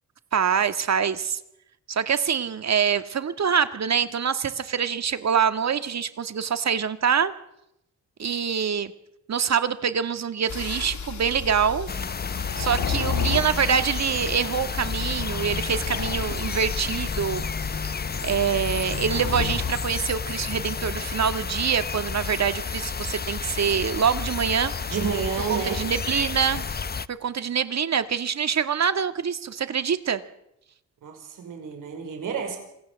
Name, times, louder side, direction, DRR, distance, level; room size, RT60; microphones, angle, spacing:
voice 1, 0.3-1.4 1.9-7.3 8.2-8.9 9.3-11.9 12.6-17.5 18.2-24.7 25.5-26.7 27.1-30.2, right 7 dB, 60° right, 10 dB, 2.0 m, -25 dB
sound 1, 10.5-19.8, left 5 dB, 70° left, 3.3 m, -32 dB
sound 2, 11.9-27.1, left 5 dB, 30° left, 0.9 m, -31 dB
voice 2, 24.9-25.8 31.0-32.6, right 6 dB, 90° right, 4 dB, 5.5 m, -30 dB
27.0 x 18.0 x 7.6 m, 0.83 s
cardioid pair, 65°, 31 cm